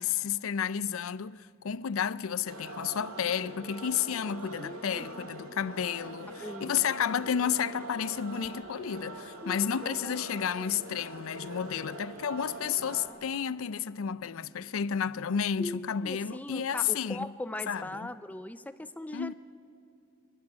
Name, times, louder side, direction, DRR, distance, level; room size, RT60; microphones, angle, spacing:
voice 1, 0.0-17.3 17.7-18.1 19.1-19.3, left 8 dB, 70° left, 0.4 m, -31 dB
sound 1, 2.5-13.1, right 2 dB, 75° right, 2.1 m, -43 dB
voice 2, 4.6-5.1 6.3-6.9 9.4-10.4 15.6-19.3, left 1 dB, 5° left, 0.5 m, -40 dB
22.0 x 12.5 x 9.9 m
head